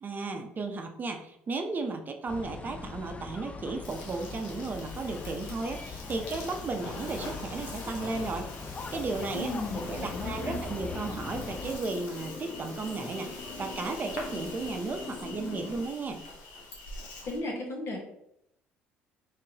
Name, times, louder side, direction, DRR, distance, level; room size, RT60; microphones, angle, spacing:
voice 1, 0.0-8.5 8.9-9.5 9.7-16.2, right 3 dB, 35° right, 5 dB, 0.6 m, -34 dB
sound 1, 2.3-11.8, left 4 dB, 25° left, 0.4 m, -41 dB
Insect, 3.8-17.4, left 2 dB, 80° left, 0.9 m, -44 dB
voice 2, 9.3-10.6 17.2-18.0, left 2 dB, 60° left, 1 dB, 1.1 m, -35 dB
sound 2, 9.7-15.8, left 3 dB, 45° left, 1.2 m, -43 dB
3.7 x 3.2 x 2.8 m, 0.77 s
hypercardioid pair, 65°, 5 cm